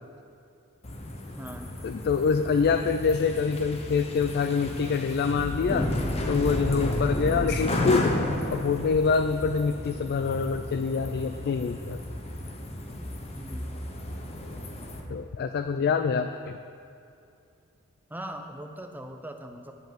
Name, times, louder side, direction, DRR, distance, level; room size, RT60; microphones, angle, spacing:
sound 1, 0.8-15.0, left 1 dB, 30° left, 0.9 m, -32 dB
voice 1, 1.3-1.7 13.3-13.6 18.1-19.7, right 1 dB, 10° right, 4 dB, 0.6 m, -40 dB
voice 2, 1.8-5.9 6.3-12.0 15.1-16.6, left 5 dB, 50° left, 8 dB, 0.3 m, -26 dB
10.0 x 5.3 x 7.6 m, 2.5 s
head